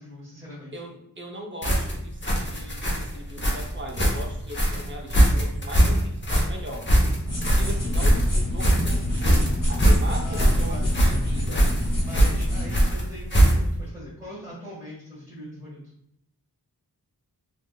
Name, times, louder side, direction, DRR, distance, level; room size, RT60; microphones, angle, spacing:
voice 1, 0.0-0.8 10.1-11.6 12.0-15.8, equal, 5° right, -10 dB, 1.3 m, -41 dB
voice 2, 0.7-6.9 7.4-9.4 9.7-11.7 12.2-12.3, equal, 30° right, 1 dB, 0.7 m, -39 dB
sound 1, 1.6-13.8, right 1 dB, 30° left, 0.8 m, -22 dB
sound 2, 7.3-12.8, left 1 dB, 55° left, 1.0 m, -26 dB
3.4 x 2.6 x 2.2 m, 0.76 s
wide cardioid pair, 45°, 38 cm